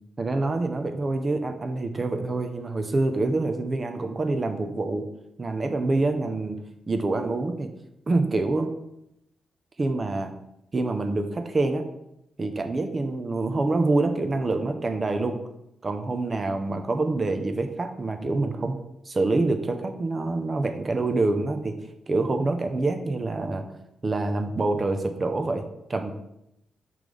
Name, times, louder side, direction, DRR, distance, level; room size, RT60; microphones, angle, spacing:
voice 1, 0.2-5.1 5.4-6.6 6.9-7.7 8.1-8.7 9.8-10.3 10.7-11.8 12.4-15.4 15.8-18.7 19.1-21.8 22.1-23.6 24.0-25.6 25.9-26.1, right 2 dB, 30° right, 6 dB, 0.7 m, -26 dB
5.8 x 3.3 x 5.2 m, 0.83 s
cardioid pair, 110°, 0 cm